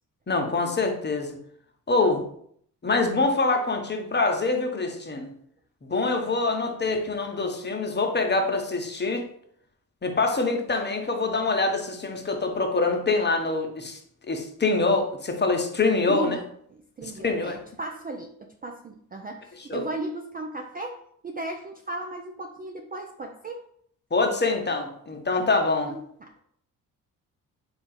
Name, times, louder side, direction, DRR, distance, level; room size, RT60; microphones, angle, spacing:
voice 1, 0.3-1.4 1.9-2.2 2.8-5.3 5.8-9.2 10.0-14.0 14.3-16.4 17.0-17.6 19.7-19.8 24.1-25.9, left 3 dB, 25° left, 3 dB, 0.8 m, -25 dB
voice 2, 16.1-16.5 17.0-21.0 21.2-23.6 25.8-26.3, right 2 dB, 20° right, 3 dB, 0.4 m, -35 dB
3.4 x 2.4 x 4.2 m, 0.65 s
hypercardioid pair, 45°, 44 cm